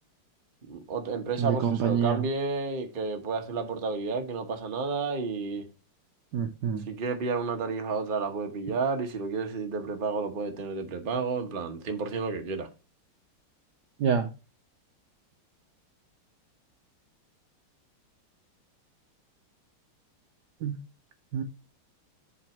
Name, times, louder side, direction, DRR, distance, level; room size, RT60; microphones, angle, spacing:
voice 1, 0.7-5.6 6.9-12.7, right 4 dB, 35° right, 0.9 m, -31 dB
voice 2, 1.4-2.3 6.3-6.9 14.0-14.3 20.6-20.8 21.3-21.4, right 7 dB, 65° right, 1.1 m, -27 dB
7.5 x 4.0 x 5.9 m
omnidirectional pair, 2.4 m